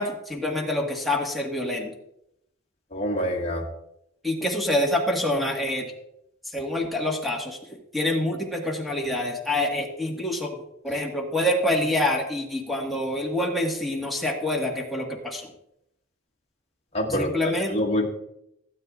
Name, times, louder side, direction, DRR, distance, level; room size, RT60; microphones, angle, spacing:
voice 1, 0.0-1.9 4.2-5.9 6.5-7.6 7.9-10.6 10.8-15.5 17.1-17.8, left 1 dB, ahead, -2 dB, 1.8 m, -26 dB
voice 2, 2.9-3.6 16.9-17.3 17.7-18.1, equal, 30° left, -2 dB, 1.7 m, -25 dB
16.5 x 8.9 x 2.5 m, 0.79 s
head